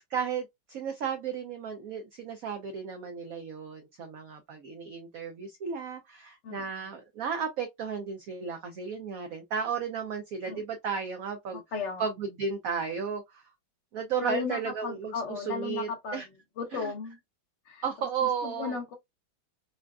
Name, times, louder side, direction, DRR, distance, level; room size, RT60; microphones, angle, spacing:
voice 1, 0.1-11.6 12.0-13.4 13.9-16.3 16.7-16.9 17.8-18.7, right 6 dB, 80° right, 0.7 m, -34 dB
voice 2, 6.4-6.8 10.5-10.6 11.5-12.1 14.2-16.3 16.6-17.2 17.6-17.8 18.4-18.9, left 5 dB, 90° left, 0.6 m, -35 dB
3.8 x 2.3 x 2.3 m
omnidirectional pair, 2.2 m